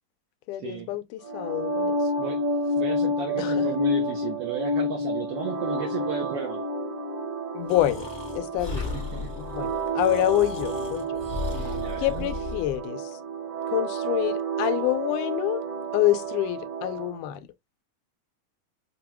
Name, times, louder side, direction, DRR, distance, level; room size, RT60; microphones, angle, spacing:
voice 1, 0.5-1.9 3.4-3.7 7.5-8.1 8.3-9.0 9.4-11.2 11.5-13.1 13.7-15.6 15.9-17.5, left 14 dB, 85° left, 2.1 m, -27 dB
sound 1, 1.2-17.2, right 1 dB, 55° right, 1.2 m, -30 dB
voice 2, 2.2-2.5 2.8-6.7 8.7-9.4 9.8-9.9 11.5-12.3, right 7 dB, 80° right, 1.3 m, -34 dB
Breathing, 7.7-12.8, left 4 dB, 40° left, 0.3 m, -36 dB
5.7 x 2.3 x 2.9 m
omnidirectional pair, 3.5 m